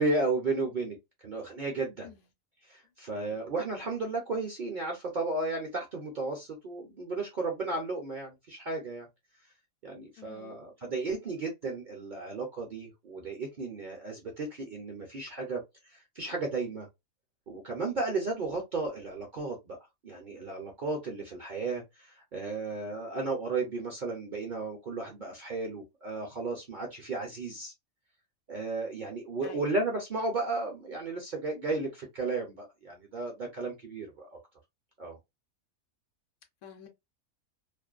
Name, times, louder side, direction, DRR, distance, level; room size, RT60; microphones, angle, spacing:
voice 1, 0.0-2.1 2.7-9.1 9.8-16.9 17.5-19.8 20.0-27.7 28.5-34.4 35.0-35.2, right 3 dB, 55° right, 0.6 m, -34 dB
voice 2, 3.2-3.5 10.2-10.6 29.4-29.8 36.6-36.9, left 7 dB, 70° left, 0.9 m, -49 dB
2.5 x 2.1 x 2.4 m
omnidirectional pair, 1.5 m